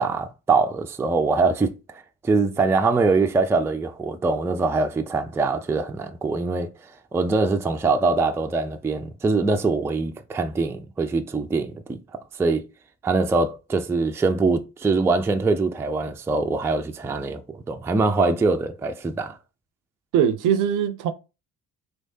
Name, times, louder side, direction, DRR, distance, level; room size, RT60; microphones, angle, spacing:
voice 1, 0.0-6.7 7.1-12.0 12.3-12.7 13.0-19.4, right 3 dB, 5° right, 0.4 m, -23 dB
voice 2, 20.1-21.1, right 8 dB, 55° right, 0.5 m, -21 dB
3.3 x 3.1 x 2.7 m
hypercardioid pair, 55°, 38 cm